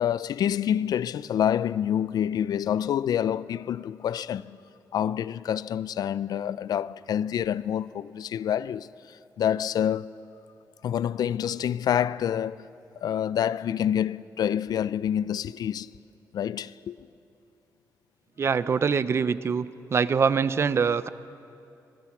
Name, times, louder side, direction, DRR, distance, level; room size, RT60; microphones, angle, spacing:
voice 1, 0.0-4.6 4.9-10.2 10.8-12.7 13.0-15.9 16.3-17.1, left 9 dB, 70° left, 0.4 m, -27 dB
voice 2, 18.4-19.7 19.9-21.1, right 6 dB, 40° right, 0.6 m, -24 dB
26.5 x 20.0 x 6.0 m
wide cardioid pair, 145°, 7 cm